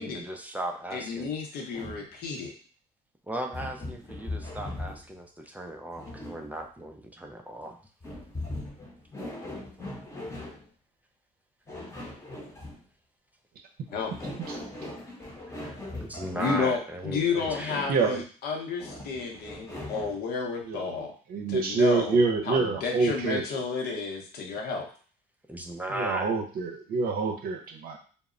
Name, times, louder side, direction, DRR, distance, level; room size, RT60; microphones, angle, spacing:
voice 1, 0.0-1.3 3.3-7.8 15.6-18.2 25.5-26.3, right 1 dB, 10° right, 2 dB, 0.3 m, -37 dB
voice 2, 0.9-2.5 13.9-14.1 16.3-21.1 21.5-22.2 22.4-24.9, left 5 dB, 65° left, 2 dB, 0.7 m, -31 dB
sound 1, 1.7-2.1 3.5-5.1 5.9-6.6 8.0-10.6 11.7-12.8 13.9-16.8 17.4-18.0 18.8-20.2, left 1 dB, 15° left, 0.7 m, -39 dB
voice 3, 17.9-18.2 20.7-20.9 21.3-23.4 25.9-28.0, right 4 dB, 60° right, 3 dB, 0.6 m, -26 dB
2.0 x 2.0 x 3.6 m, 0.41 s
cardioid pair, 110°, 17 cm